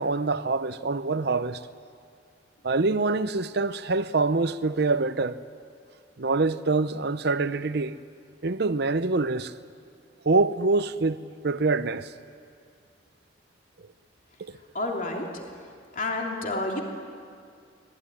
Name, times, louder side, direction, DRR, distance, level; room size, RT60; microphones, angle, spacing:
voice 1, 0.0-1.6 2.6-5.4 6.2-8.0 8.4-9.5 10.2-11.2 11.4-12.1 13.8-13.9 14.4-14.6, right 3 dB, 60° right, 0.8 m, -25 dB
voice 2, 14.7-15.3 15.9-16.8, left 2 dB, 45° left, 3.1 m, -29 dB
25.5 x 20.0 x 10.0 m
head